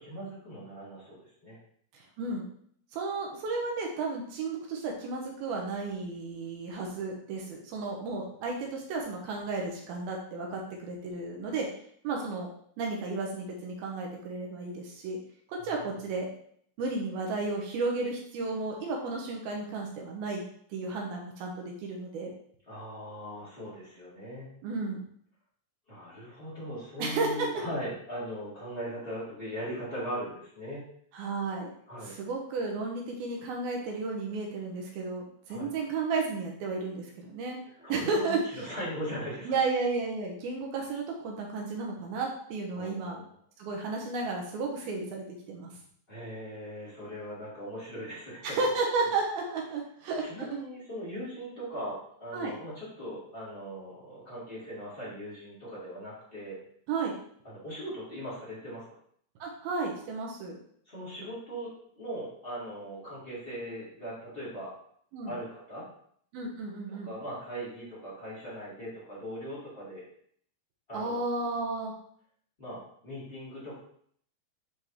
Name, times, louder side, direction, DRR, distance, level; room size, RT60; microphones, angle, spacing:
voice 1, 0.0-1.6 15.6-15.7 22.7-24.5 25.9-30.8 31.9-32.1 35.5-35.7 37.8-39.6 42.7-43.2 46.1-48.6 50.2-56.6 57.4-58.8 60.8-61.7 61.9-64.7 65.3-65.8 67.0-70.0 70.9-71.2 72.6-73.8, equal, 25° left, -9 dB, 1.1 m, -39 dB
voice 2, 1.9-2.5 2.9-11.7 12.0-12.5 12.8-15.2 15.5-16.3 16.8-20.4 20.7-22.3 24.6-25.0 27.0-27.6 31.1-31.7 32.0-37.6 37.9-38.4 39.5-43.2 43.6-45.7 48.4-50.6 52.3-52.5 56.9-57.1 59.4-60.6 65.1-65.3 66.3-67.1 70.9-71.9, right 3 dB, 75° right, 0 dB, 2.4 m, -33 dB
9.2 x 3.5 x 3.0 m, 0.63 s
omnidirectional pair, 5.1 m